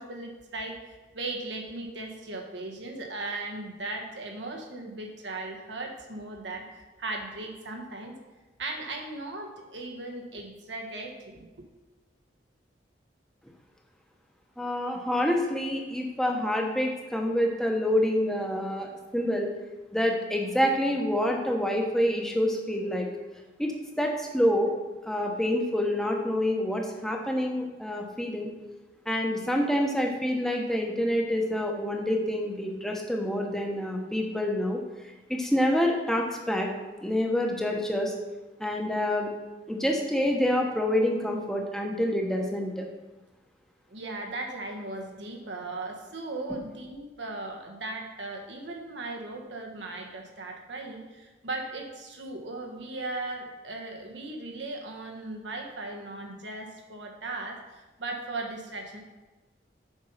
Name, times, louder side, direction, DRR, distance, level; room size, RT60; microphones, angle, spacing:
voice 1, 0.0-8.2 8.6-11.7 43.9-59.0, right 2 dB, 85° right, 1 dB, 1.4 m, -37 dB
voice 2, 14.6-19.5 19.9-23.1 23.6-24.7 25.0-28.5 29.1-34.8 35.3-36.7 37.0-38.1 38.6-39.3 39.7-42.8, left 1 dB, 5° left, 1 dB, 1.0 m, -27 dB
7.9 x 5.4 x 5.6 m, 1.2 s
head